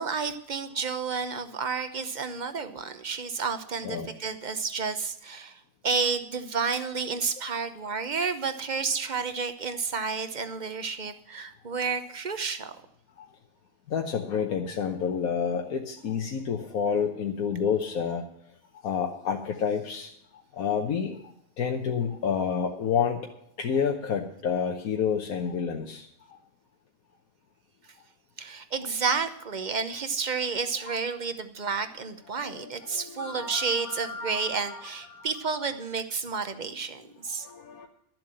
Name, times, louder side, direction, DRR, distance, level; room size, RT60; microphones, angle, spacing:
voice 1, 0.0-12.7 28.4-37.5, right 5 dB, 40° right, 10 dB, 0.8 m, -31 dB
voice 2, 13.9-18.2 18.8-20.1 20.6-21.2 21.6-23.2 23.6-26.1 30.9-31.0 32.4-35.2 37.4-37.9, left 7 dB, 85° left, 2 dB, 1.5 m, -29 dB
12.5 x 7.7 x 7.6 m, 0.73 s
omnidirectional pair, 1.5 m